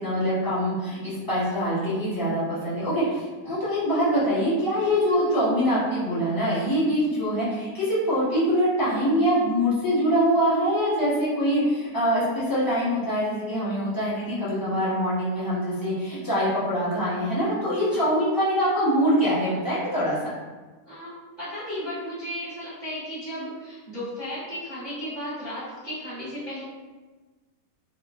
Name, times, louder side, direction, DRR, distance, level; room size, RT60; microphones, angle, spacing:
voice 1, 0.0-20.2, equal, 15° left, -11 dB, 0.7 m, -24 dB
voice 2, 20.8-26.6, equal, 35° right, -13 dB, 0.9 m, -35 dB
3.0 x 2.2 x 2.4 m, 1.3 s
omnidirectional pair, 1.9 m